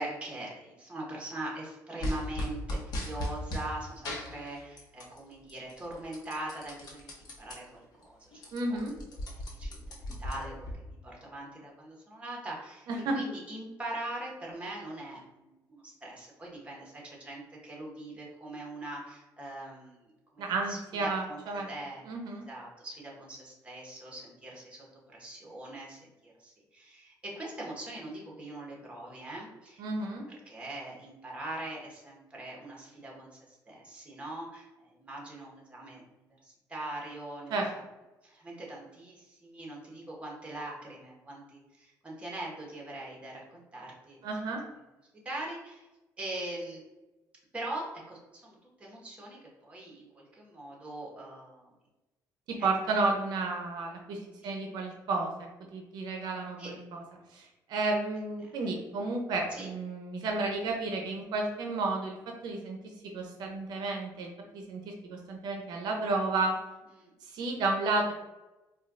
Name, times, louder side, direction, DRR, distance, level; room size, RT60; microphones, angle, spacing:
voice 1, 0.0-8.8 9.3-37.6 38.2-44.3 45.2-45.9 46.2-46.8 47.5-51.7 52.6-52.7 54.4-54.5 56.6-56.7 58.4-58.7 59.5-59.7 67.0-67.1, right 1 dB, 15° right, -3 dB, 1.2 m, -42 dB
sound 1, 2.0-3.7 4.0-5.2 5.5-7.6 8.0-8.1 8.3-10.7, left 1 dB, 65° left, 0.9 m, -37 dB
voice 2, 8.5-8.9 12.9-13.2 20.4-21.7 22.1-22.5 29.8-30.2 37.5-37.7 44.2-44.6 52.5-55.3 55.6-57.0 57.3-62.8 63.0-64.3 64.5-66.5 67.2-68.1, right 3 dB, 75° right, 2 dB, 0.5 m, -32 dB
4.3 x 2.3 x 2.4 m, 1.1 s
cardioid pair, 100°, 7 cm